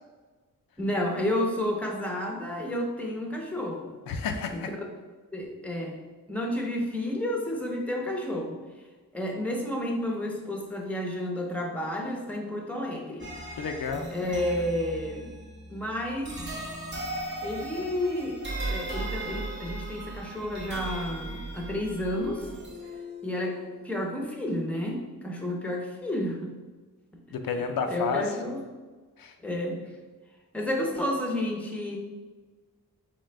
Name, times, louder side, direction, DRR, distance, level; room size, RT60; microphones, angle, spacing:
voice 1, 0.8-4.0 4.5-4.6 5.3-6.0 6.3-8.6 9.1-13.3 14.1-15.3 15.7-16.4 17.4-22.5 23.2-26.5 27.9-28.6 29.4-29.9 30.5-32.0, left 1 dB, 5° left, 0 dB, 0.7 m, -31 dB
voice 2, 4.1-4.7 13.6-14.1 27.4-28.3 29.2-29.3, left 5 dB, 90° left, 5 dB, 0.6 m, -30 dB
sound 1, 13.2-24.2, right 1 dB, 35° right, 0.9 m, -38 dB
4.3 x 3.8 x 3.3 m, 1.3 s
wide cardioid pair, 135°, 34 cm